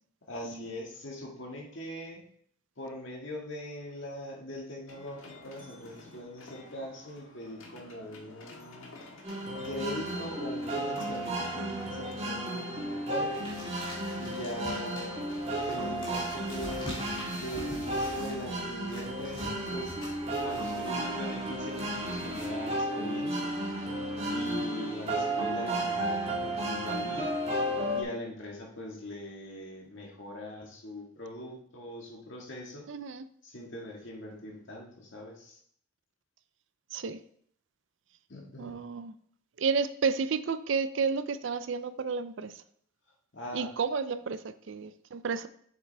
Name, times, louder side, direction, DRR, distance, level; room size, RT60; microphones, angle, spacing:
voice 1, 0.3-2.2 2.8-8.9 9.6-13.3 14.2-15.2 15.6-17.0 17.3-19.9 20.4-23.5 24.3-27.4 27.9-32.8 33.4-35.6 38.3-38.8 43.3-43.7, left 1 dB, 60° left, -1 dB, 1.9 m, -41 dB
sound 1, 4.9-16.5, left 2 dB, 75° left, 1.7 m, -50 dB
sound 2, 9.2-28.0, right 1 dB, 30° right, 1.7 m, -33 dB
sound 3, 13.3-22.5, equal, 25° left, 2.6 m, -45 dB
voice 2, 32.9-33.2 36.9-37.2 38.6-39.1 39.6-42.5 43.5-45.5, right 5 dB, 60° right, 13 dB, 0.4 m, -31 dB
7.6 x 7.2 x 3.4 m, 0.63 s
head